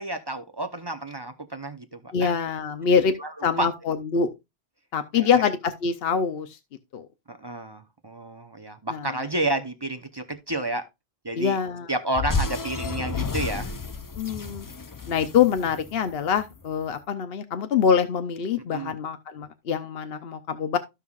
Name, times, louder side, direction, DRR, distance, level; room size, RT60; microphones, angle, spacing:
voice 1, 0.0-2.4 3.2-3.7 5.1-5.4 7.3-10.9 11.2-11.6 11.9-13.7 18.7-18.9, right 2 dB, 25° right, 0.8 m, -30 dB
voice 2, 2.1-3.1 3.4-4.3 4.9-6.5 6.9-7.1 8.9-9.1 11.4-11.9 14.2-14.7 15.1-20.8, left 6 dB, 70° left, 1.0 m, -24 dB
sound 1, 12.2-16.5, left 4 dB, 35° left, 0.3 m, -31 dB
14.5 x 5.6 x 2.4 m
omnidirectional pair, 1.1 m